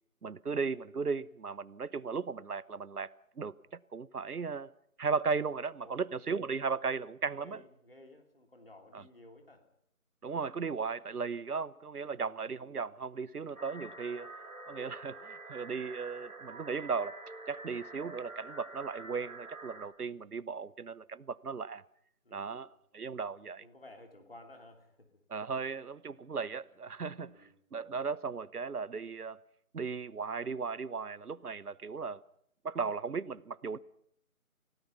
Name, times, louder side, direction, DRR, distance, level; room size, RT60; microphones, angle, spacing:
voice 1, 0.2-3.5 3.9-4.7 5.0-7.6 8.9-9.0 10.2-14.3 14.7-17.2 17.5-21.8 22.3-23.6 25.3-27.3 27.7-29.4 29.7-32.2 32.6-33.8, right 5 dB, 85° right, 1.0 m, -36 dB
voice 2, 7.3-9.7 12.1-12.4 22.2-22.7 23.6-25.1 27.2-27.6, left 1 dB, 40° left, 3.2 m, -55 dB
sound 1, 13.6-19.9, right 2 dB, 65° right, 3.2 m, -47 dB
29.0 x 18.0 x 5.7 m
figure-of-eight pair, 180°, 44 cm